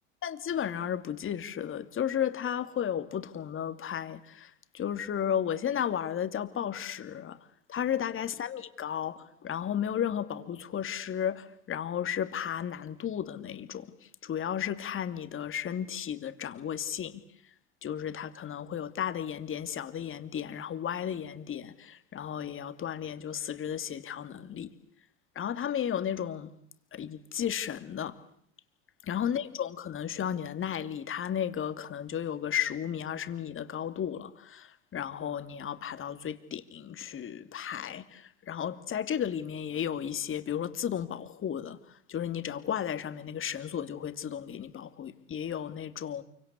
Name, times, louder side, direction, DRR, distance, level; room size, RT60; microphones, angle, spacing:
voice 1, 0.2-7.4 7.7-13.9 14.2-17.2 17.8-24.7 25.4-26.5 26.9-28.2 29.1-41.8 42.1-46.2, left 9 dB, 35° left, 2.7 m, -34 dB
29.0 x 24.5 x 8.4 m
hypercardioid pair, 80°, 36 cm